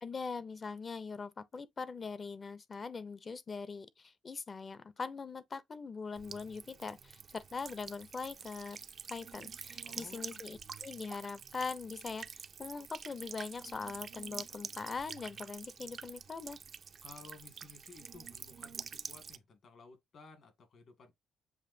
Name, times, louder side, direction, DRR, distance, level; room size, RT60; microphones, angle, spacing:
voice 1, 0.0-8.8 9.1-16.6, left 4 dB, 35° left, 0.6 m, -42 dB
Buzz / Water tap faucet / Trickle dribble, 6.2-19.4, right 6 dB, 50° right, 0.4 m, -47 dB
voice 2, 9.8-10.4 17.0-21.1, left 4 dB, 60° left, 2.0 m, -56 dB
7.2 x 2.6 x 2.7 m
cardioid pair, 90°, 0 cm